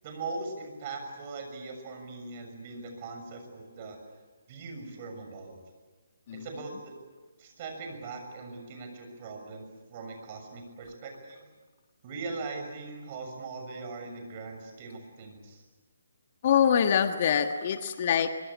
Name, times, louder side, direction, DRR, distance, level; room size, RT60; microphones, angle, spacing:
voice 1, 0.0-4.0 4.5-5.6 6.4-6.9 7.4-9.6 9.9-11.5 12.0-15.6, right 3 dB, 35° right, 4 dB, 6.7 m, -40 dB
voice 2, 16.4-18.3, left 8 dB, 40° left, 8 dB, 1.5 m, -24 dB
23.5 x 23.5 x 8.6 m, 1.3 s
figure-of-eight pair, 145°, 0 cm